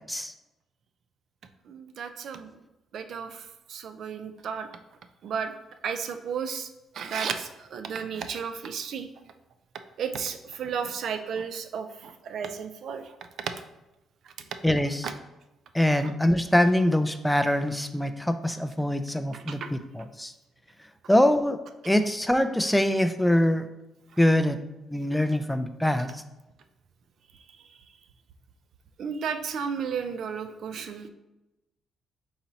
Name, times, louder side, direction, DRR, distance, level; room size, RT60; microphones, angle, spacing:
voice 1, 1.7-2.5 2.9-4.7 5.2-5.5 5.8-6.7 6.9-9.1 10.0-13.1 13.4-13.5 15.0-15.1 15.9-16.0 19.3-19.7 29.0-31.1, right 6 dB, 65° right, 8 dB, 0.4 m, -33 dB
voice 2, 14.6-15.1 15.7-20.3 21.1-21.6 21.9-23.7 24.2-24.6 24.9-26.1, left 1 dB, 5° left, 10 dB, 0.3 m, -23 dB
4.2 x 3.9 x 2.7 m, 0.98 s
cardioid pair, 90°, 0 cm